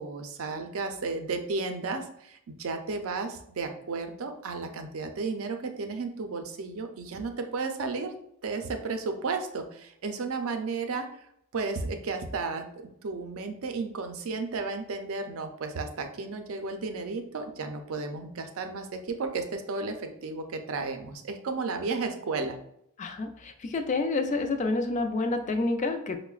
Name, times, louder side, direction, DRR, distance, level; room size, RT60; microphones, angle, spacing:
voice 1, 0.0-8.1 8.4-11.1 11.5-22.6, right 4 dB, 75° right, 6 dB, 0.5 m, -33 dB
voice 2, 23.0-26.2, left 3 dB, 35° left, 6 dB, 0.3 m, -28 dB
5.5 x 2.1 x 2.3 m, 0.73 s
head